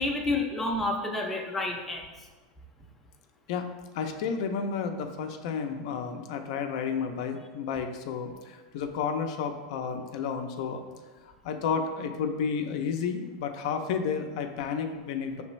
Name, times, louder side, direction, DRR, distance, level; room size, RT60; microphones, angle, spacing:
voice 1, 0.0-2.0, left 2 dB, 5° left, 0 dB, 0.5 m, -29 dB
voice 2, 3.9-10.8 11.2-15.4, left 6 dB, 65° left, 6 dB, 0.4 m, -31 dB
5.2 x 3.2 x 3.1 m, 1.3 s
supercardioid pair, 150°, 3 cm